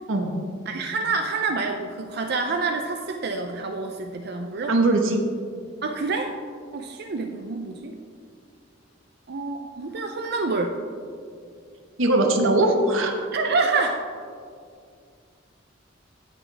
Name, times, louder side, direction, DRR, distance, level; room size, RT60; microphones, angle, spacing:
voice 1, 0.7-4.7 5.8-6.3 6.7-7.9 9.3-10.7 13.3-14.0, right 3 dB, 55° right, 4 dB, 0.5 m, -27 dB
voice 2, 4.7-5.2 12.0-13.1, right 2 dB, 90° right, 3 dB, 1.2 m, -20 dB
17.0 x 6.2 x 3.4 m, 2.3 s
head